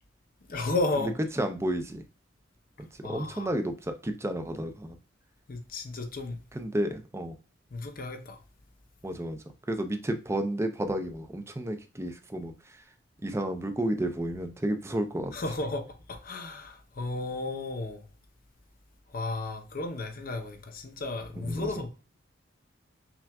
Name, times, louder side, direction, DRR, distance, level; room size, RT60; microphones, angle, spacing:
voice 1, 0.5-1.1 3.0-3.5 5.5-6.4 7.7-8.4 15.3-18.0 19.1-21.9, left 2 dB, 50° left, 0.7 m, -33 dB
voice 2, 1.3-2.0 3.1-5.0 6.5-7.4 9.0-9.4 9.7-12.5 13.2-15.3 21.4-21.7, right 1 dB, 15° right, 0.5 m, -31 dB
5.8 x 2.5 x 2.2 m
head